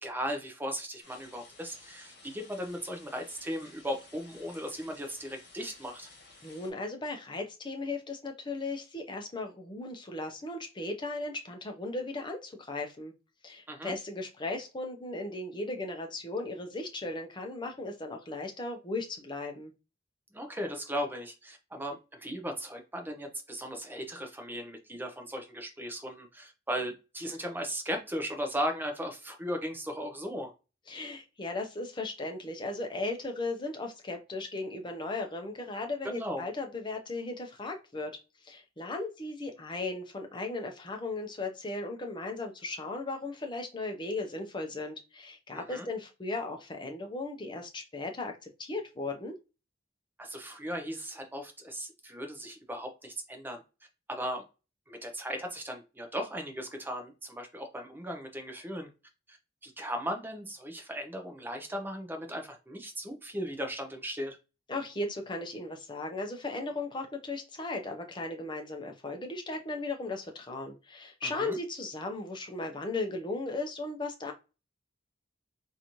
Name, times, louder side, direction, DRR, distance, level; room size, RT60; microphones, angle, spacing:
voice 1, 0.0-6.1 13.7-13.9 20.3-30.5 36.0-36.4 45.5-45.9 50.2-53.6 54.1-54.4 54.9-58.9 59.3-59.4 59.6-64.4 71.2-71.6, equal, 10° right, 4 dB, 0.6 m, -37 dB
sound 1, 1.0-6.7, left 3 dB, 60° left, 1.3 m, -55 dB
voice 2, 6.4-13.1 13.4-19.7 30.9-38.1 38.4-49.3 64.7-74.3, left 2 dB, 25° left, 3 dB, 0.7 m, -36 dB
3.9 x 2.6 x 3.0 m, 0.29 s
head